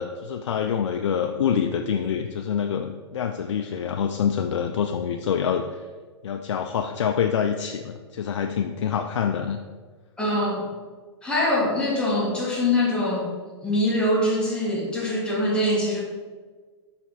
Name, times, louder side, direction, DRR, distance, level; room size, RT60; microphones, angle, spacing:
voice 1, 0.0-5.9 6.2-9.6, left 7 dB, 85° left, 5 dB, 0.4 m, -26 dB
voice 2, 10.2-10.7 11.2-13.3 13.6-16.0, left 1 dB, 5° left, -5 dB, 1.6 m, -23 dB
5.7 x 4.2 x 4.1 m, 1.4 s
hypercardioid pair, 135°, 15 cm